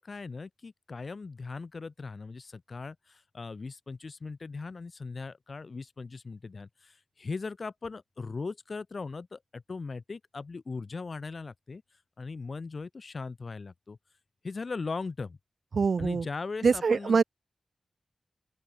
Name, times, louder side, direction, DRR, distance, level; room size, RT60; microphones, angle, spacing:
voice 1, 0.0-11.8 12.2-14.0 14.4-15.4 16.0-17.2, left 4 dB, 50° left, 6.2 m, -39 dB
voice 2, 15.7-16.3 16.6-17.2, right 5 dB, 65° right, 1.9 m, -24 dB
open air
wide cardioid pair, 100°, 0 cm